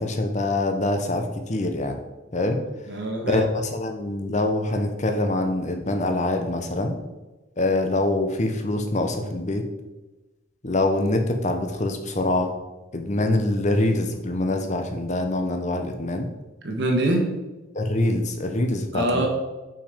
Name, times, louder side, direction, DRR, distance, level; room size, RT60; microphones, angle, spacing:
voice 1, 0.0-2.0 2.3-2.6 3.3-7.0 7.6-9.6 10.6-12.5 12.9-16.3 17.7-19.3, left 2 dB, 35° left, 5 dB, 0.8 m, -24 dB
voice 2, 2.9-3.4 16.6-17.3 18.9-19.3, right 1 dB, 55° right, 1 dB, 1.3 m, -24 dB
5.9 x 5.2 x 5.0 m, 1.1 s
head